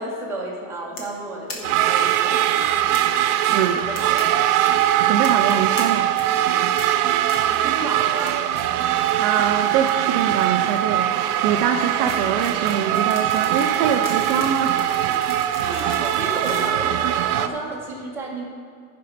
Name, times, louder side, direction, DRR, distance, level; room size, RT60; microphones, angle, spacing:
voice 1, 0.0-2.7 3.7-4.6 7.1-8.5 15.6-18.5, right 2 dB, 5° right, -5 dB, 1.4 m, -32 dB
sound 1, 1.0-1.2 1.5-1.6 1.8-1.9 2.1-2.2 2.9-3.0 3.6-4.2 4.5-4.7 5.2-5.8 6.1-6.5 6.8-6.9 7.3-7.6 8.0-8.3 8.6-9.2 9.4-17.5, left 2 dB, 30° left, 1.4 m, -37 dB
sound 2, 1.6-17.5, right 12 dB, 80° right, 0.6 m, -21 dB
voice 2, 5.1-6.1 9.2-11.1 11.4-14.8, right 8 dB, 40° right, 4 dB, 0.4 m, -23 dB
14.5 x 5.5 x 4.1 m, 2.3 s
supercardioid pair, 165°, 45 cm